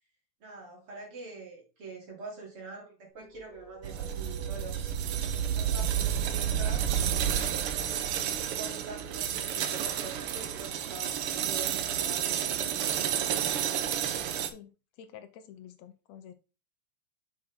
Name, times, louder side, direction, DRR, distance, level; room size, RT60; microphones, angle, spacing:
voice 1, 0.4-5.0 5.5-13.0, right 3 dB, 50° right, -2 dB, 3.6 m, -45 dB
sound 1, 3.1-10.7, right 1 dB, 20° left, 2.7 m, -53 dB
sound 2, 3.8-14.5, right 9 dB, 75° right, 1.3 m, -30 dB
voice 2, 15.0-16.3, left 9 dB, 75° left, 10 dB, 1.8 m, -48 dB
6.3 x 6.2 x 3.5 m, 0.31 s
omnidirectional pair, 3.3 m